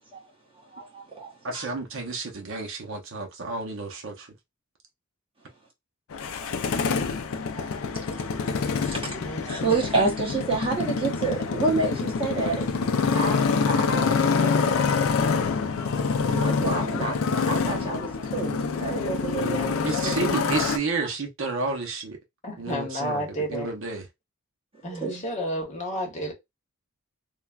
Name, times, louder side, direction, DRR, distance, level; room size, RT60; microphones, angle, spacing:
voice 1, 0.7-1.6 6.4-6.5 6.8-7.0 7.5-7.7 8.1-8.2 8.5-9.2 9.4-12.7 13.0-14.8 16.2-20.1 24.8-25.3, right 3 dB, 25° right, 1.0 m, -29 dB
voice 2, 1.4-4.3 19.8-22.2 22.6-24.1, right 3 dB, 60° right, 0.7 m, -31 dB
Motorcycle, 6.1-20.8, left 5 dB, 65° left, 0.4 m, -26 dB
voice 3, 9.1-9.7 22.4-23.7 24.8-26.3, equal, 30° left, 0.9 m, -31 dB
3.2 x 2.2 x 2.3 m
head